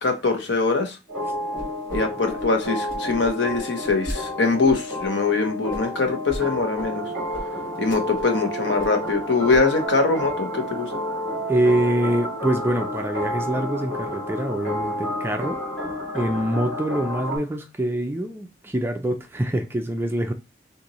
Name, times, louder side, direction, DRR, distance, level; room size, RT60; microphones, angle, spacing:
voice 1, 0.0-1.0 1.9-7.0 7.8-10.9, left 3 dB, 75° left, 1.0 m, -22 dB
sound 1, 1.1-17.4, equal, 5° left, 2.8 m, -30 dB
sound 2, 1.5-2.0 2.2-4.2 4.6-5.1 5.7-6.4 6.8-6.9 7.3-7.4 7.7-8.4 8.6-9.2 9.5-9.9, equal, 50° left, 1.6 m, -36 dB
voice 2, 11.5-15.6 16.1-20.3, right 1 dB, 10° right, 0.4 m, -25 dB
6.6 x 2.6 x 3.0 m
head